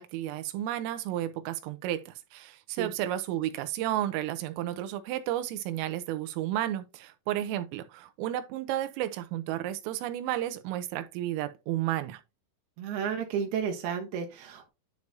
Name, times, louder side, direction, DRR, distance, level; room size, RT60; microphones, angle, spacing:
voice 1, 0.0-12.2, right 13 dB, 90° right, 3.4 m, -32 dB
voice 2, 12.8-14.7, right 7 dB, 75° right, 2.4 m, -32 dB
11.0 x 4.7 x 2.7 m
omnidirectional pair, 5.9 m